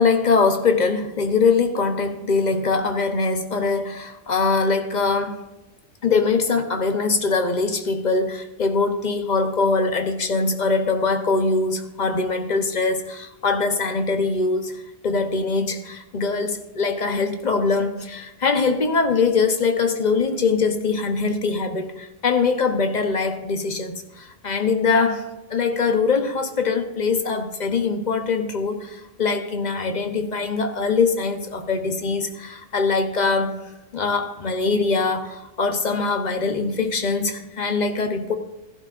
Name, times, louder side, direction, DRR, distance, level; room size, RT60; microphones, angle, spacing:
voice 1, 0.0-5.4 6.0-38.3, left 4 dB, 40° left, 6 dB, 1.0 m, -22 dB
15.5 x 11.0 x 2.6 m, 1.0 s
omnidirectional pair, 1.1 m